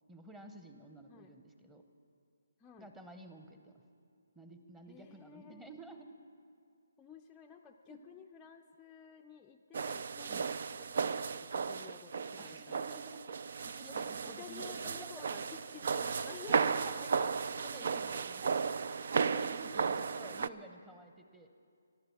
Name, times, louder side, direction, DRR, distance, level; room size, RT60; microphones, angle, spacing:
voice 1, 0.1-1.8 2.8-3.8 4.3-6.1 7.9-8.0 10.3-10.4 12.4-15.5 16.5-18.8 19.3-21.5, right 1 dB, 5° right, 5 dB, 0.9 m, -52 dB
voice 2, 4.9-5.7 7.0-12.8 14.2-16.8 19.5-20.4, left 7 dB, 10° left, 1 dB, 0.5 m, -53 dB
sound 1, 9.7-20.5, right 5 dB, 55° right, 0.4 m, -35 dB
13.5 x 11.5 x 7.0 m, 2.3 s
hypercardioid pair, 155°, 0 cm